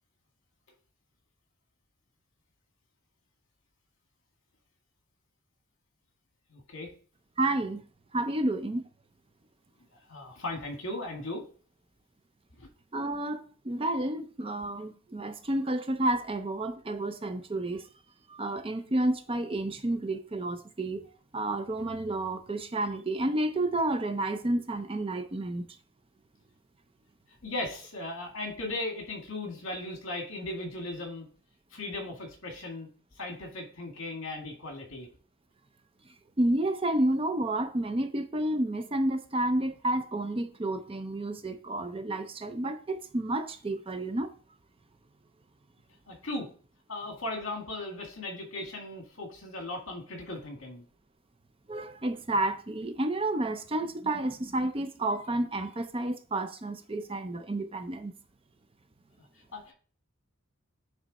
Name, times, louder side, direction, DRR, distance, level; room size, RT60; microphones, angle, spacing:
voice 1, 6.5-6.9 10.1-11.5 12.6-12.7 27.4-31.3 31.7-32.9 33.2-35.1 46.1-46.5 46.9-50.8 59.5-59.7, left 2 dB, 70° left, 2.0 m, -37 dB
voice 2, 7.4-7.8 8.1-8.9 12.9-17.8 18.3-21.0 21.3-25.6 36.4-44.3 51.7-58.1, right 1 dB, 25° right, 0.6 m, -30 dB
9.0 x 3.4 x 4.1 m
head